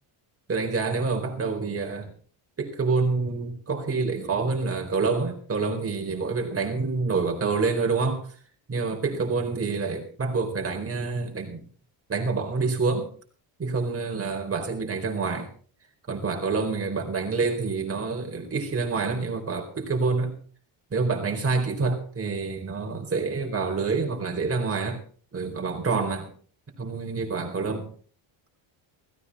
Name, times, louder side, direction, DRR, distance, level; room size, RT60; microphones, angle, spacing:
voice 1, 0.5-2.1 2.6-8.2 8.7-11.6 12.1-13.1 13.6-15.5 16.1-20.3 20.9-25.0 25.3-26.3 26.8-27.9, right 4 dB, 30° right, 2 dB, 4.4 m, -27 dB
17.0 x 14.5 x 4.2 m, 0.43 s
cardioid pair, 145°, 48 cm